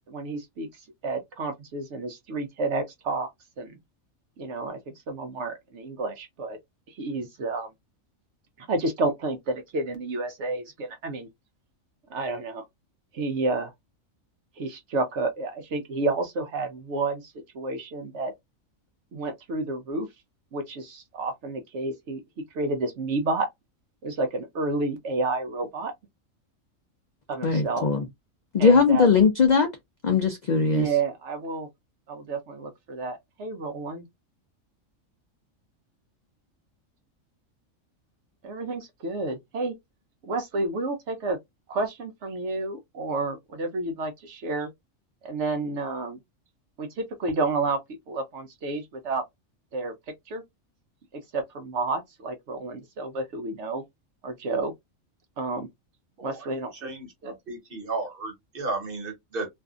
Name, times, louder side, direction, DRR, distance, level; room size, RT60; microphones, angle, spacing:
voice 1, 0.1-3.3 3.6-3.8 4.4-6.6 6.9-7.7 8.6-11.3 12.1-12.6 13.1-13.7 14.6-18.3 19.1-20.1 20.5-22.2 22.5-23.5 24.0-25.9 27.3-27.9 28.6-29.1 30.7-31.7 32.1-34.0 38.4-39.7 40.3-41.4 41.7-44.7 45.2-46.2 46.8-47.8 48.1-49.2 49.7-49.9 50.3-50.4 51.1-53.8 54.2-54.7 55.4-55.7 56.2-56.9 57.2-57.3, right 3 dB, 65° right, 0.8 m, -30 dB
voice 2, 27.4-28.0 28.5-29.7 30.0-30.9, left 5 dB, 70° left, 0.4 m, -19 dB
voice 3, 56.8-59.5, right 3 dB, 45° right, 1.1 m, -34 dB
2.6 x 2.4 x 2.4 m
omnidirectional pair, 1.4 m